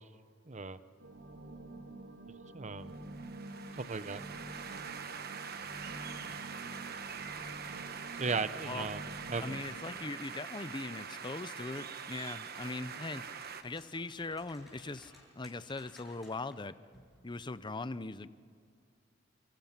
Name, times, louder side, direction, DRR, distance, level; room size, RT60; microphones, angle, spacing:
voice 1, 0.5-0.8 2.5-2.9 3.8-4.2 8.2-9.0 9.3-9.6, right 4 dB, 40° right, 13 dB, 0.8 m, -36 dB
sound 1, 1.0-9.8, right 2 dB, 85° right, 2.7 m, -48 dB
sound 2, 2.9-13.6, right 6 dB, 55° right, 1.3 m, -44 dB
voice 2, 9.4-16.7 17.2-18.3, left 3 dB, 25° left, 14 dB, 0.6 m, -40 dB
sound 3, 11.8-12.7 13.1-16.6 16.9-17.1, left 1 dB, ahead, 7.3 m, -59 dB
28.5 x 26.0 x 6.0 m, 2.2 s
head